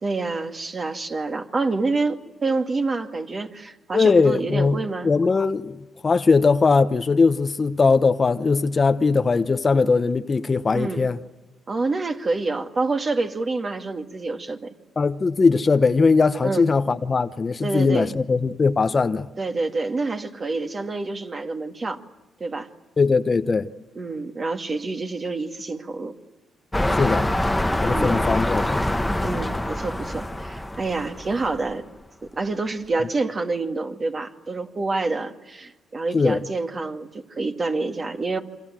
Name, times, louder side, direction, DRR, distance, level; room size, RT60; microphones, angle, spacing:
voice 1, 0.0-5.1 10.7-11.1 11.7-14.7 16.4-16.7 17.6-18.1 19.4-22.0 22.4-22.7 23.9-26.1 27.9-28.2 29.2-31.8 32.2-38.4, right 3 dB, 35° right, 2.3 m, -27 dB
voice 2, 3.9-4.8 5.0-11.2 15.0-19.3 23.0-23.7 26.9-27.3 27.8-28.8 36.1-36.4, left 4 dB, 35° left, 0.9 m, -20 dB
sound 1, 26.7-31.7 32.3-32.4, left 1 dB, 10° left, 1.1 m, -25 dB
28.5 x 25.5 x 7.6 m
cardioid pair, 90°, 0 cm